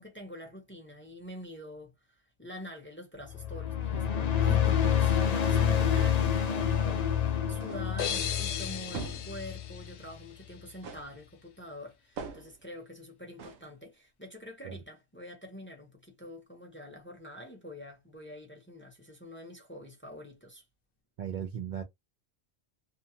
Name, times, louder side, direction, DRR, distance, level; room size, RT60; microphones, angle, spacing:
voice 1, 0.0-20.6, equal, 15° left, 0.6 m, -46 dB
sound 1, 3.3-9.9, left 9 dB, 55° left, 0.5 m, -28 dB
voice 2, 3.9-4.6 5.5-6.0 14.6-14.7 21.2-21.8, right 8 dB, 60° right, 0.6 m, -39 dB
sound 2, 7.6-8.0 8.9-9.4 10.8-11.2 12.2-12.6 13.4-13.7, right 5 dB, 90° right, 0.9 m, -42 dB
sound 3, 8.0-10.8, left 8 dB, 85° left, 0.9 m, -37 dB
2.7 x 2.3 x 2.8 m
omnidirectional pair, 1.1 m